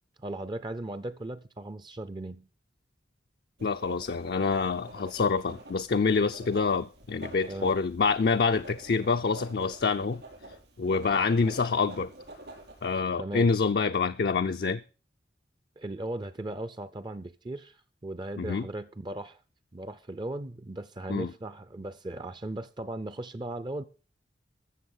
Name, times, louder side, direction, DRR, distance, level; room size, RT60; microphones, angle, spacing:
voice 1, 0.2-2.5 7.5-7.7 11.4-11.5 13.2-13.5 15.8-19.4 19.7-23.8, right 1 dB, 25° right, 0.5 m, -37 dB
voice 2, 3.6-10.2 10.8-12.1 12.8-14.8 18.4-18.7 21.1-21.3, left 4 dB, 60° left, 0.5 m, -26 dB
Writing, 3.6-13.0, right 2 dB, 70° right, 4.9 m, -48 dB
14.0 x 6.9 x 5.5 m
head